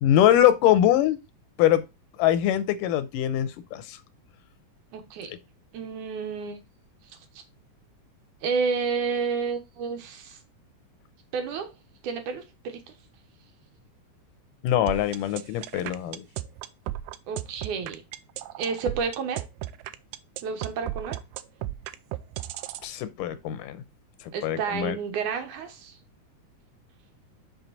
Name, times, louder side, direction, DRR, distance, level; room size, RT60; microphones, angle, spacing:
voice 1, 0.0-1.2 1.6-1.8 2.2-4.0 14.6-16.2 22.8-23.8 24.4-25.0, left 12 dB, 85° left, 2.3 m, -22 dB
voice 2, 4.9-5.3 5.7-6.6 8.4-10.4 11.3-11.7 12.0-12.8 17.3-18.0 18.6-19.5 20.4-21.2 24.3-26.0, right 5 dB, 70° right, 2.5 m, -30 dB
sound 1, 14.9-22.8, right 14 dB, 90° right, 2.2 m, -34 dB
6.0 x 5.9 x 3.9 m
omnidirectional pair, 3.7 m